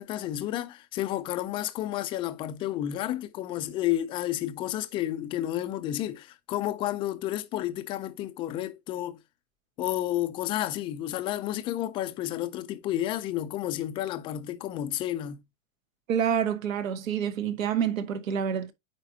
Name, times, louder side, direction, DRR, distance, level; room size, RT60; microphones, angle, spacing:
voice 1, 0.0-9.2 9.8-15.4, left 13 dB, 15° left, 0.3 m, -31 dB
voice 2, 16.1-18.7, right 8 dB, 80° right, 1.5 m, -27 dB
9.1 x 4.4 x 2.7 m
hypercardioid pair, 140°, 39 cm